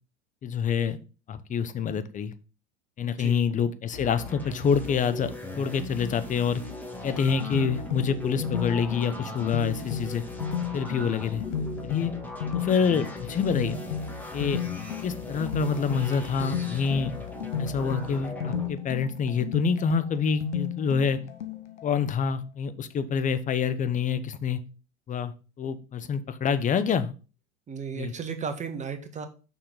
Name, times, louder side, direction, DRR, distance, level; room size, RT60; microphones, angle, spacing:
voice 1, 0.4-1.0 1.3-2.3 3.0-6.6 7.0-10.2 10.7-11.4 11.8-12.1 12.5-13.8 14.3-14.6 15.0-17.1 17.6-21.2 21.8-24.6 25.1-27.1 27.9-28.1, left 6 dB, 20° left, 12 dB, 0.8 m, -27 dB
voice 2, 3.0-3.4 27.7-29.3, right 6 dB, 20° right, 7 dB, 1.3 m, -35 dB
sound 1, 3.9-18.7, left 2 dB, 5° left, 1.6 m, -39 dB
sound 2, 7.0-21.9, left 6 dB, 75° left, 1.0 m, -34 dB
6.6 x 5.8 x 3.8 m, 0.34 s
figure-of-eight pair, 85°, 35 cm